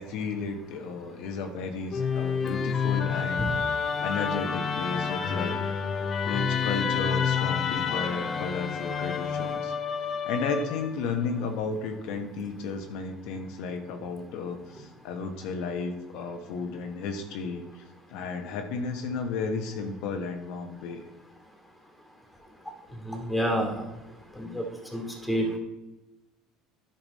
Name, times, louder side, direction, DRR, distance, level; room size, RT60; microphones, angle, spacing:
voice 1, 0.0-3.5 4.0-5.5 6.2-9.7 10.2-17.8 18.1-21.0, left 4 dB, 70° left, 4 dB, 1.1 m, -33 dB
Musical instrument, 1.9-11.1, left 6 dB, 35° left, 0.8 m, -29 dB
voice 2, 23.0-23.8 24.3-24.6 24.9-25.5, equal, 5° left, 2 dB, 2.4 m, -28 dB
10.5 x 5.9 x 4.2 m, 1.0 s
supercardioid pair, 100°, 0 cm